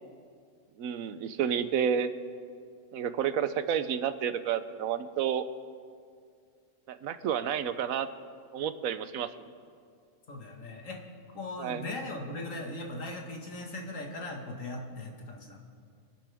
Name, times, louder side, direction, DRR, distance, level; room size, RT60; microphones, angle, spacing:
voice 1, 0.8-2.1 2.9-5.4 6.9-8.1 8.5-9.3 11.6-11.8, right 8 dB, 85° right, 12 dB, 1.1 m, -30 dB
voice 2, 10.3-11.0 11.3-15.6, left 2 dB, 70° left, 0 dB, 2.1 m, -39 dB
26.0 x 10.5 x 3.5 m, 2.2 s
omnidirectional pair, 1.4 m